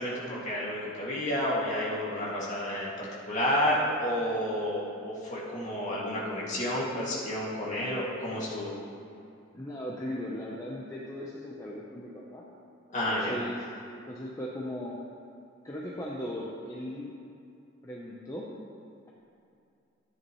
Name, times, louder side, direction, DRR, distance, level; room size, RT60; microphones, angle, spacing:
voice 1, 0.0-8.7 12.9-13.3, equal, 35° left, -6 dB, 2.3 m, -30 dB
voice 2, 9.5-12.4 13.1-13.6 14.1-15.0 15.6-17.1 17.8-18.4, left 1 dB, 15° left, -5 dB, 0.8 m, -37 dB
13.5 x 9.7 x 3.2 m, 2.5 s
head